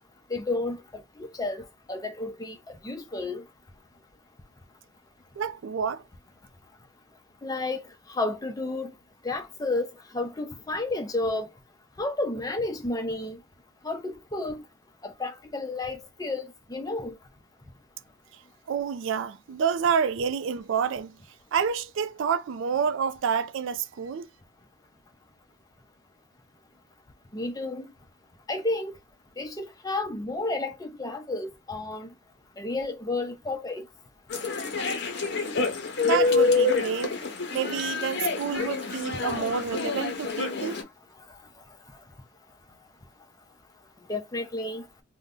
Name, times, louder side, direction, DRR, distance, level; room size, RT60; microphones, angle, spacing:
voice 1, 0.3-3.5 6.7-6.8 7.4-9.0 9.2-11.6 11.9-13.4 13.8-14.7 15.0-17.3 27.3-27.9 28.3-29.0 29.4-32.1 32.6-33.9 34.6-34.8 40.5-40.8 41.1-45.0, left 2 dB, 20° left, 0.5 m, -33 dB
voice 2, 5.4-6.0 18.7-21.2 21.5-24.3 36.0-37.2 37.5-40.8, right 7 dB, 65° right, 0.3 m, -28 dB
sound 1, 34.3-40.8, left 3 dB, 55° left, 0.7 m, -27 dB
2.6 x 2.1 x 3.5 m
head